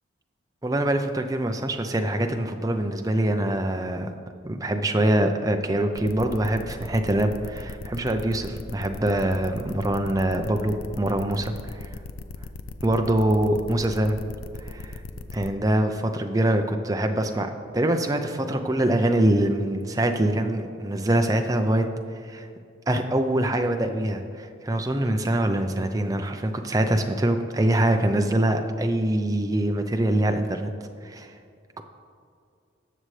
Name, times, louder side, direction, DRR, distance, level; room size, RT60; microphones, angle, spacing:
voice 1, 0.6-4.1 4.4-11.9 12.8-14.2 14.6-15.0 15.3-21.9 22.3-22.5 22.9-30.7 31.0-31.3, right 1 dB, 15° right, 5 dB, 0.5 m, -24 dB
sound 1, 5.9-15.5, left 3 dB, 85° left, 0.5 m, -38 dB
18.5 x 6.5 x 3.3 m, 2.3 s
head